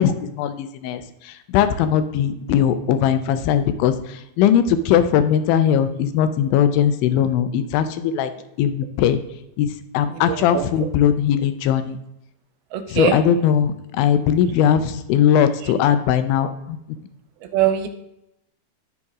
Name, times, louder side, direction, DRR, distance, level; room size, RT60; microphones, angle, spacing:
voice 1, 0.0-8.3 8.6-9.2 9.6-12.0 12.9-16.8, left 9 dB, 80° left, 10 dB, 2.2 m, -19 dB
voice 2, 10.3-10.6 12.7-13.2 17.5-17.9, right 11 dB, 85° right, 6 dB, 2.5 m, -21 dB
12.5 x 4.2 x 3.6 m, 0.86 s
omnidirectional pair, 4.5 m